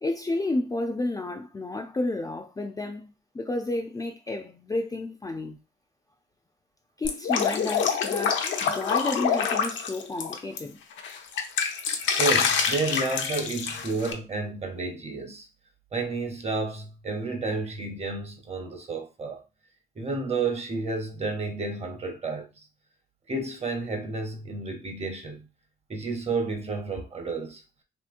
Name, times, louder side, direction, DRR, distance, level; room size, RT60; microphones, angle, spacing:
voice 1, 0.0-3.0 3.3-5.6 7.0-10.8, left 2 dB, 20° left, 0.4 m, -31 dB
Drip, 7.0-10.6 11.0-14.1, left 6 dB, 70° left, 0.6 m, -26 dB
voice 2, 12.2-15.5 15.9-19.4 20.0-22.5 23.3-25.5 25.9-27.6, right 3 dB, 30° right, 0.8 m, -31 dB
2.9 x 2.9 x 2.5 m
cardioid pair, 90°, 20 cm